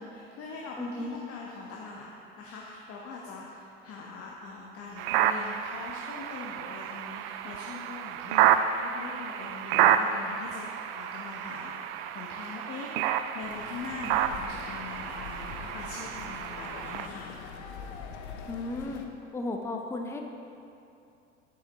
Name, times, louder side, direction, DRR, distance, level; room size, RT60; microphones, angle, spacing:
voice 1, 0.0-2.1 2.4-12.9 13.3-17.4, left 4 dB, 40° left, -3 dB, 1.0 m, -42 dB
voice 2, 0.8-1.2 18.5-19.0 19.3-20.2, left 2 dB, 5° left, 3 dB, 0.5 m, -34 dB
sound 1, 5.0-17.1, right 10 dB, 50° right, 0.4 m, -29 dB
sound 2, 13.4-19.1, left 5 dB, 65° left, 0.8 m, -43 dB
8.4 x 7.2 x 3.5 m, 2.7 s
hypercardioid pair, 80°, 37 cm